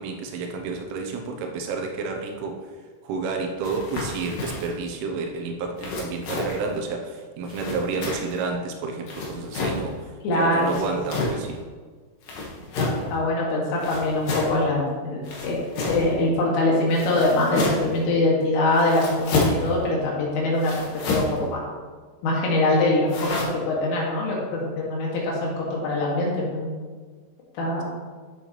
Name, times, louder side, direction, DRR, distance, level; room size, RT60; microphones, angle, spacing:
voice 1, 0.0-2.6 3.0-11.6, right 4 dB, 80° right, 3 dB, 3.3 m, -30 dB
sound 1, 3.6-4.7 5.8-6.7 7.5-8.4 9.1-9.8 10.6-11.4 12.2-13.1 13.8-14.6 15.2-16.1 16.9-18.0 18.7-19.7 20.6-21.4 23.1-23.4, left 2 dB, 60° left, 2.5 m, -29 dB
voice 2, 10.2-10.9 12.8-15.6 15.9-20.7 21.1-21.6 22.2-23.3 23.7-26.7 27.6-27.8, left 2 dB, 80° left, -3 dB, 4.7 m, -23 dB
13.0 x 7.0 x 3.2 m, 1.5 s
omnidirectional pair, 5.8 m